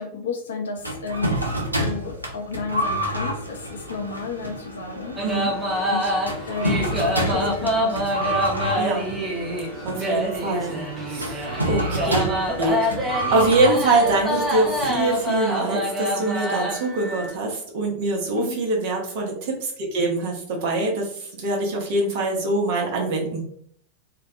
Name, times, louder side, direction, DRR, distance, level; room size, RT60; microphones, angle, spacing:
voice 1, 0.0-1.4 1.8-5.2 5.7-6.2 6.5-8.4 18.4-18.6, left 4 dB, 65° left, 2 dB, 0.5 m, -32 dB
sound 1, 0.8-15.5, right 1 dB, 85° right, 0.4 m, -29 dB
sound 2, 5.2-17.3, equal, 10° right, 0.6 m, -26 dB
voice 2, 5.2-5.5 8.8-9.0 9.8-13.0 13.3-23.4, right 2 dB, 50° right, -1 dB, 0.7 m, -24 dB
2.2 x 2.1 x 2.6 m, 0.63 s
figure-of-eight pair, 90°, 0 cm